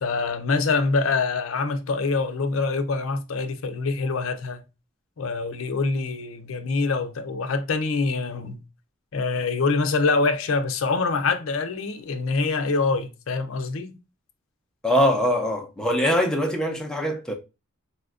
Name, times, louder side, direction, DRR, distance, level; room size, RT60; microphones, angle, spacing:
voice 1, 0.0-4.6 5.2-8.6 9.1-14.0, left 4 dB, 70° left, 0.5 m, -25 dB
voice 2, 14.8-17.3, equal, 5° left, 0.5 m, -22 dB
4.1 x 2.2 x 2.4 m
head